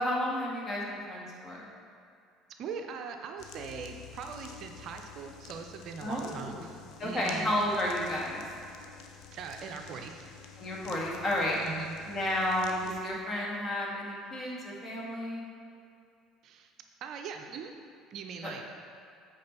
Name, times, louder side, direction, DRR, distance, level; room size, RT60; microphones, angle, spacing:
voice 1, 0.0-1.7 6.0-6.7 7.0-8.4 10.6-11.6 12.1-15.4 18.4-18.5, left 1 dB, 35° left, -3 dB, 1.7 m, -32 dB
voice 2, 2.6-7.5 9.3-10.3 11.6-11.9 16.4-16.7 17.0-17.7 18.1-18.6, right 6 dB, 50° right, 4 dB, 0.5 m, -41 dB
sound 1, 3.4-13.0, left 6 dB, 55° left, 0.6 m, -49 dB
8.3 x 4.8 x 4.0 m, 2.4 s
figure-of-eight pair, 60°, 0 cm